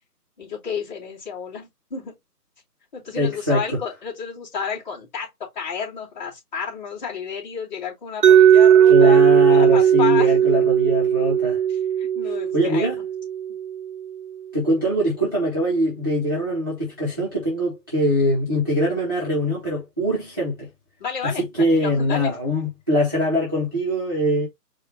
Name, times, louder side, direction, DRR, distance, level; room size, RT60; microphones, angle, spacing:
voice 1, 0.4-2.2 2.9-10.3 12.0-13.0 21.0-22.3, left 6 dB, 25° left, 2.7 m, -31 dB
voice 2, 3.2-3.6 8.9-11.6 12.5-13.0 14.5-20.7 21.2-24.5, equal, 15° right, 0.8 m, -22 dB
Mallet percussion, 8.2-14.1, right 9 dB, 65° right, 0.7 m, -16 dB
4.8 x 2.4 x 3.9 m
figure-of-eight pair, 165°, 48 cm